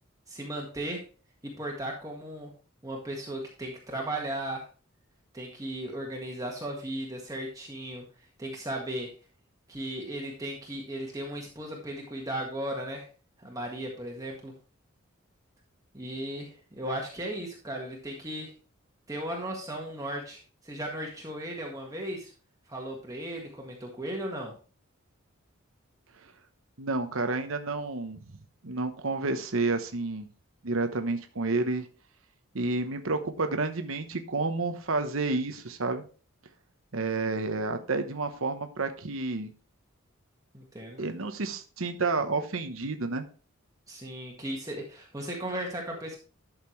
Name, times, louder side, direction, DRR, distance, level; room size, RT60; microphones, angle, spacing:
voice 1, 0.3-1.0 1.4-2.5 2.8-4.7 5.3-8.0 8.4-9.1 9.7-13.1 13.4-14.5 15.9-18.5 19.1-22.3 22.7-24.5 40.5-41.0 43.9-46.2, right 1 dB, 15° right, -1 dB, 1.7 m, -36 dB
voice 2, 26.8-28.2 28.6-30.3 30.6-31.9 32.5-36.0 36.9-39.5 41.0-43.3, right 3 dB, 75° right, 7 dB, 1.0 m, -30 dB
12.0 x 6.6 x 3.2 m, 0.37 s
head